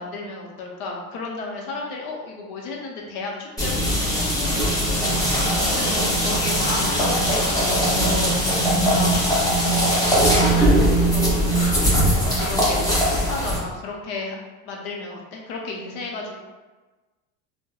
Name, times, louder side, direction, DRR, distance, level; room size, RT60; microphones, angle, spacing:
voice 1, 0.0-8.4 8.9-9.1 9.6-14.3 14.6-16.3, left 3 dB, 80° left, 0 dB, 0.7 m, -33 dB
sound 1, 3.6-13.6, equal, 10° left, 0.7 m, -20 dB
2.7 x 2.1 x 2.3 m, 1.2 s
supercardioid pair, 110°, 41 cm